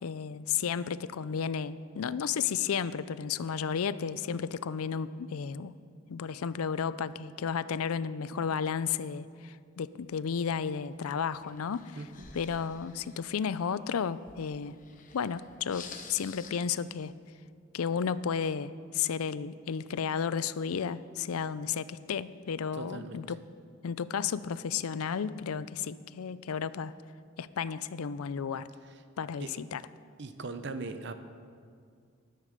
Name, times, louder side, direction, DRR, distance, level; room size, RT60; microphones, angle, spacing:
voice 1, 0.0-5.7 6.1-12.0 12.3-14.8 15.1-17.1 17.7-23.4 23.8-26.9 27.4-28.7 29.2-29.8, left 7 dB, 90° left, 16 dB, 0.4 m, -33 dB
sound 1, 10.1-17.1, left 5 dB, 35° left, 0.9 m, -51 dB
voice 2, 11.9-12.3 22.7-23.2 29.4-29.5 30.2-31.1, right 3 dB, 55° right, 10 dB, 0.7 m, -39 dB
13.0 x 10.5 x 5.2 m, 2.1 s
head